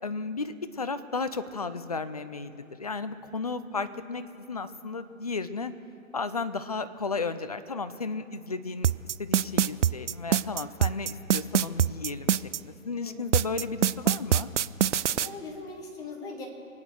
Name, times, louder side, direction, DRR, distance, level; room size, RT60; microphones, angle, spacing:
voice 1, 0.0-5.7 6.1-8.9 9.2-12.3 12.6-14.5, left 4 dB, 30° left, 12 dB, 0.4 m, -34 dB
sound 1, 8.8-12.6 13.3-15.3, right 10 dB, 60° right, 0.5 m, -23 dB
voice 2, 15.1-16.5, left 3 dB, 10° left, 1 dB, 1.0 m, -40 dB
24.5 x 9.1 x 6.4 m, 2.5 s
hypercardioid pair, 150°, 41 cm